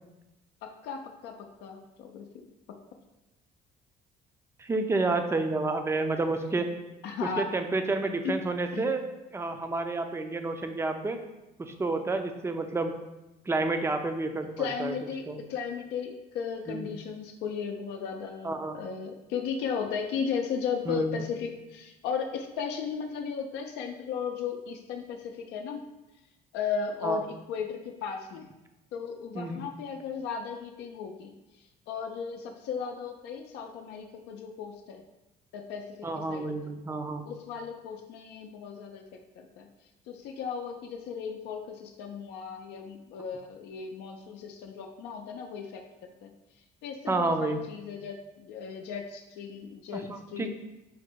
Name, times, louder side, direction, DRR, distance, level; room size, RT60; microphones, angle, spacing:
voice 1, 0.6-2.3 7.0-7.4 8.2-8.4 8.7-8.8 14.6-15.2 15.5-25.8 26.5-28.5 28.9-31.3 31.9-35.0 35.5-35.8 36.3-36.7 37.3-39.0 39.4-39.7 40.1-45.8 46.2-46.3 46.8-50.0 50.3-50.5, left 6 dB, 85° left, 3 dB, 0.5 m, -35 dB
voice 2, 4.6-6.7 7.2-9.0 9.3-11.2 11.6-12.9 13.5-14.9 15.3-15.4 16.7-16.9 18.4-18.8 20.9-21.2 27.0-27.2 29.3-29.6 36.0-37.3 47.1-47.6 49.9-50.5, right 3 dB, 15° right, 6 dB, 0.4 m, -30 dB
4.8 x 2.1 x 4.5 m, 0.99 s
cardioid pair, 110°, 17 cm